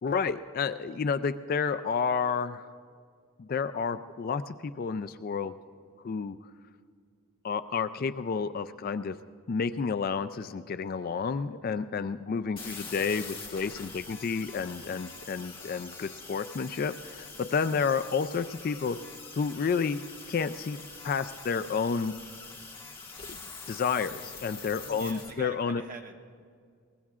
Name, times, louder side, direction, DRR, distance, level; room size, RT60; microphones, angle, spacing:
voice 1, 0.0-2.7 3.4-5.5 6.0-6.4 7.4-9.1 9.5-19.0 19.3-20.0 20.3-20.8 21.0-22.1 23.3-23.4 23.7-25.8, left 5 dB, 40° left, 12 dB, 0.3 m, -30 dB
sound 1, 12.6-25.3, left 4 dB, 25° left, 1.7 m, -45 dB
voice 2, 24.9-26.2, right 2 dB, 40° right, 2 dB, 1.2 m, -45 dB
23.0 x 19.5 x 2.4 m, 2.1 s
head